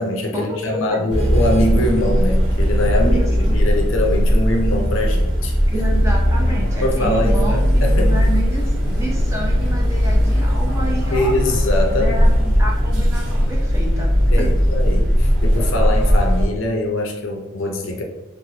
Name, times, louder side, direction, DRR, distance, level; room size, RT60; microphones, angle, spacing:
voice 1, 0.0-5.6 6.4-6.5 6.8-8.2 11.1-12.2 14.3-18.0, left 1 dB, 65° left, 1 dB, 0.5 m, -23 dB
sound 1, 1.1-16.4, equal, 65° right, 1.2 m, -18 dB
voice 2, 3.0-3.6 5.7-11.3 11.9-14.1 14.4-14.5, right 1 dB, 15° right, -3 dB, 0.5 m, -29 dB
3.0 x 2.0 x 2.7 m, 1.1 s
head